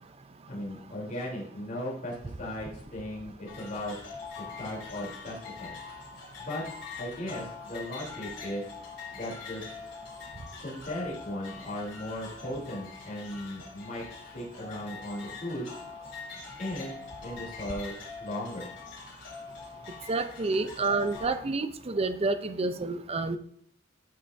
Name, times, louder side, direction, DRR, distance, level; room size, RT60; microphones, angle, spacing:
voice 1, 0.5-3.9 4.6-5.7 6.4-6.6 7.0-8.6 9.1-9.7 10.6-14.0 14.3-15.7 16.6-18.7, left 1 dB, 45° left, -5 dB, 3.0 m, -37 dB
sound 1, 3.5-21.3, left 5 dB, 70° left, 2.8 m, -44 dB
voice 2, 20.1-23.4, right 3 dB, 30° right, 11 dB, 0.5 m, -29 dB
11.0 x 5.6 x 2.6 m, 0.62 s
head